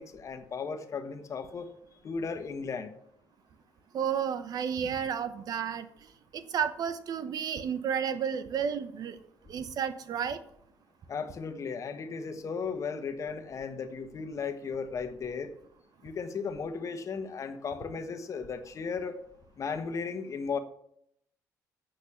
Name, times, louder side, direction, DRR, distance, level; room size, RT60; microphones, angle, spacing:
voice 1, 0.0-1.7 2.0-2.9 4.8-4.9 11.1-15.5 16.0-19.1 19.6-20.6, left 5 dB, 45° left, 8 dB, 1.4 m, -35 dB
voice 2, 3.9-5.9 6.3-9.2 9.5-10.4, right 7 dB, 65° right, 12 dB, 0.9 m, -32 dB
8.4 x 6.5 x 7.2 m, 0.71 s
cardioid pair, 85°, 7 cm